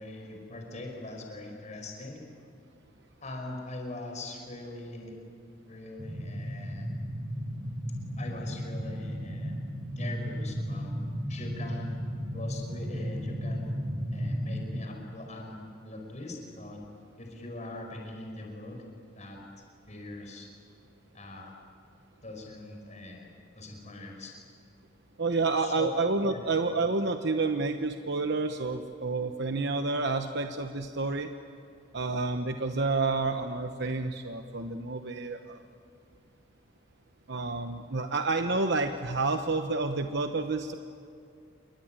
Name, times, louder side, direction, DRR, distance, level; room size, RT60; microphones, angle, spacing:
voice 1, 0.0-2.2 3.2-5.1 5.7-6.9 8.2-9.6 9.9-10.9 11.3-11.9 12.3-13.7 14.1-16.8 17.2-18.8 19.2-19.4 19.9-20.5 21.1-21.5 22.2-23.3 23.5-24.3 25.6-25.9 26.2-26.5, left 2 dB, 35° left, 2 dB, 5.3 m, -42 dB
sound 1, 6.0-14.8, equal, 40° right, 6.3 m, -34 dB
voice 2, 25.2-31.3 31.9-35.6 37.3-40.7, right 3 dB, 60° right, 6 dB, 1.0 m, -29 dB
28.5 x 23.0 x 9.0 m, 2.3 s
head